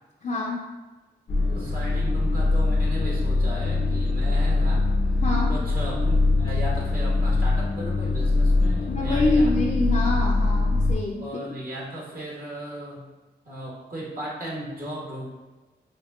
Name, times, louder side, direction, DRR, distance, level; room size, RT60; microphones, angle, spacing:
voice 1, 0.2-0.7 5.2-5.6 8.9-11.4, left 2 dB, 45° left, -3 dB, 0.5 m, -25 dB
sound 1, 1.3-10.9, left 3 dB, 80° left, 0.7 m, -23 dB
voice 2, 1.5-4.9 5.5-9.6 11.2-13.1 13.4-15.3, right 1 dB, 55° right, -4 dB, 1.4 m, -36 dB
5.2 x 2.3 x 2.4 m, 1.2 s
cardioid pair, 45°, 19 cm